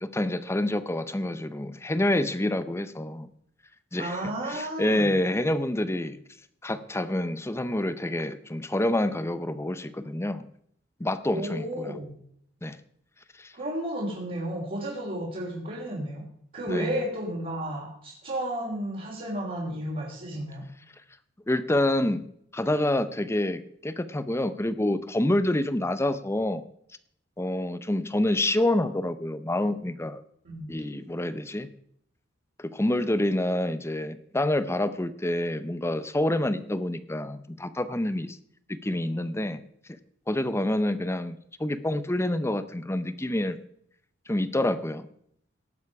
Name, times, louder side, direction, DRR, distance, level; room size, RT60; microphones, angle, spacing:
voice 1, 0.0-3.3 3.9-6.2 6.6-10.5 11.0-12.0 12.6-12.8 13.4-13.5 16.7-17.0 21.5-22.2 22.5-26.6 27.4-30.2 30.7-31.7 32.6-38.4 38.8-39.6 40.3-41.3 41.6-43.6 44.3-45.1, left 1 dB, 15° left, 12 dB, 0.7 m, -27 dB
voice 2, 4.0-5.2 11.3-12.1 13.5-16.2 16.5-20.6 30.4-30.7, right 1 dB, 45° right, -6 dB, 3.3 m, -32 dB
18.0 x 7.3 x 4.8 m, 0.68 s
head